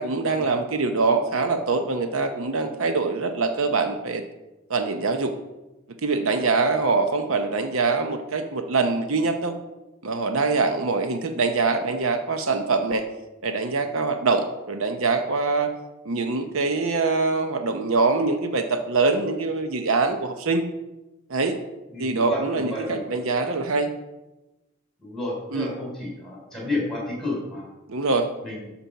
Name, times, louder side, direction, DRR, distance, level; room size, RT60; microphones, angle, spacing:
voice 1, 0.0-4.2 4.7-5.3 6.0-9.5 10.0-13.0 13.4-15.7 16.0-20.6 21.3-21.6 22.0-23.9 25.5-25.7 27.9-28.3, right 3 dB, 80° right, 6 dB, 0.8 m, -24 dB
voice 2, 21.9-23.0 25.0-27.7 28.4-28.6, left 1 dB, ahead, -3 dB, 3.7 m, -31 dB
12.5 x 4.4 x 5.7 m, 1.0 s
head